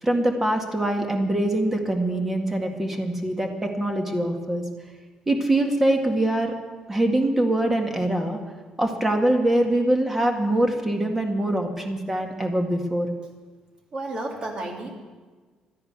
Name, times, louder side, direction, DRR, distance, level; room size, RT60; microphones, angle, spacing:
voice 1, 0.0-4.6 5.3-6.5 6.9-8.4 8.8-13.1, right 1 dB, 15° right, 3 dB, 2.0 m, -23 dB
voice 2, 13.9-14.9, right 2 dB, 40° right, 1 dB, 2.9 m, -31 dB
13.5 x 10.5 x 9.6 m, 1.4 s
cardioid pair, 145°, 2 cm